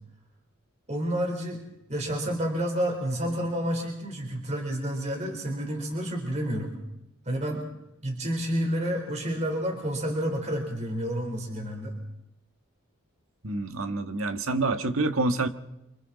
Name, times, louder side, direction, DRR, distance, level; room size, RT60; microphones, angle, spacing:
voice 1, 0.9-1.6 1.9-6.7 7.3-7.7 8.0-11.9, equal, 35° right, 4.0 m, -29 dB
voice 2, 13.4-15.5, right 2 dB, 80° right, 1.7 m, -27 dB
30.0 x 26.5 x 4.2 m
head